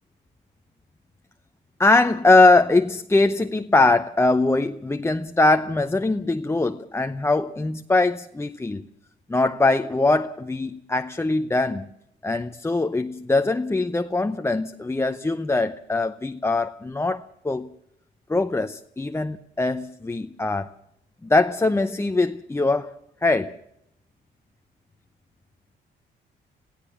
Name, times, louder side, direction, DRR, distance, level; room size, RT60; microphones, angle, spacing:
voice 1, 1.8-8.9 9.3-11.9 12.2-17.7 18.3-20.7 21.2-22.9 23.2-23.6, left 2 dB, 15° left, 0.7 m, -22 dB
26.5 x 16.0 x 7.1 m
cardioid pair, 90°, 20 cm